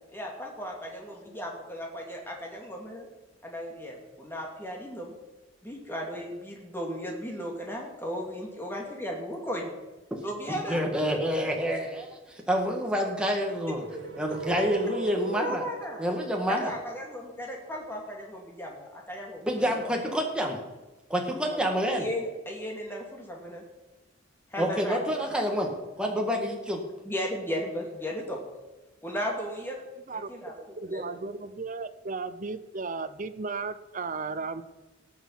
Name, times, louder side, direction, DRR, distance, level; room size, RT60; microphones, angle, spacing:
voice 1, 0.1-3.1 3.4-5.1 5.6-9.7 10.2-10.8 15.4-16.0 16.5-19.5 19.8-19.9 21.5-23.6 24.5-25.0 27.0-28.4 29.0-29.8 30.3-30.5 30.8-31.1, equal, 10° left, -1 dB, 2.5 m, -36 dB
voice 2, 10.5-12.1 12.5-13.9 14.2-15.6 16.0-16.7 19.4-20.6 21.1-22.1 24.6-25.7 26.0-26.8, equal, 5° right, 1 dB, 1.8 m, -28 dB
sound 1, 13.5-17.6, right 4 dB, 75° right, 1.3 m, -39 dB
voice 3, 30.8-34.6, right 4 dB, 40° right, 12 dB, 0.6 m, -35 dB
18.0 x 6.4 x 5.7 m, 1.1 s
head